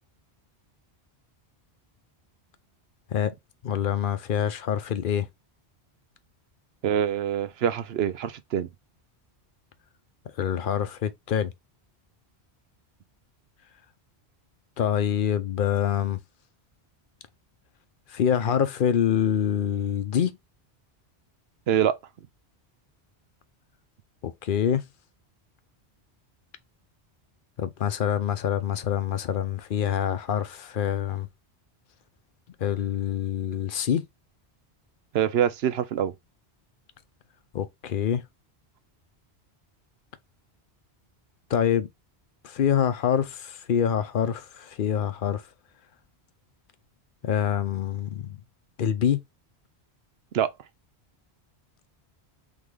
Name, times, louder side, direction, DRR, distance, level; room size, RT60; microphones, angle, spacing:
voice 1, 3.6-5.3 10.4-11.5 14.8-16.2 18.1-20.4 24.2-24.8 27.6-31.3 32.6-34.0 37.5-38.2 41.5-41.9 42.4-45.4 47.2-48.4 48.8-49.2, left 9 dB, 55° left, 0.8 m, -26 dB
voice 2, 6.8-8.7 21.7-22.0 35.1-36.1 50.3-50.5, right 9 dB, 70° right, 0.9 m, -25 dB
3.9 x 3.6 x 3.2 m
omnidirectional pair, 1.1 m